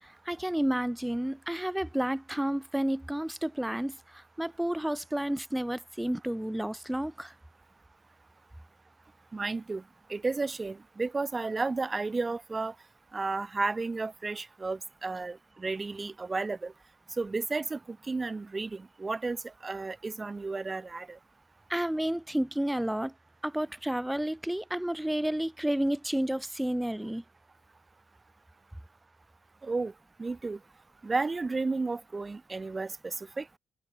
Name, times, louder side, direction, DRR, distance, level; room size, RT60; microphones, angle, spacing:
voice 1, 0.0-7.3 21.7-23.1 23.4-27.2, right 1 dB, 5° right, 4.0 m, -31 dB
voice 2, 9.3-9.8 10.1-12.7 13.1-16.7 17.2-21.2 29.6-29.9 30.2-30.6 31.0-33.5, right 3 dB, 25° right, 4.1 m, -33 dB
cardioid pair, 90°, 0 cm